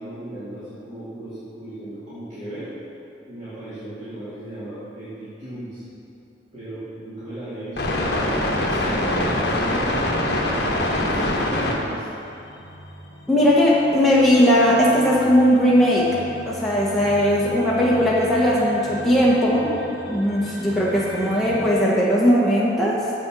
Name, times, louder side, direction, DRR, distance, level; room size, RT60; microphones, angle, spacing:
voice 1, 0.0-2.7 3.3-5.8 6.5-10.5 11.0-12.1, right 1 dB, 40° right, -14 dB, 2.4 m, -36 dB
sound 1, 7.8-11.9 12.4-21.7, left 1 dB, 60° left, 1.3 m, -27 dB
voice 2, 13.3-16.2 16.5-19.7 20.1-23.0, equal, ahead, -7 dB, 1.2 m, -18 dB
7.4 x 7.3 x 6.1 m, 2.8 s
head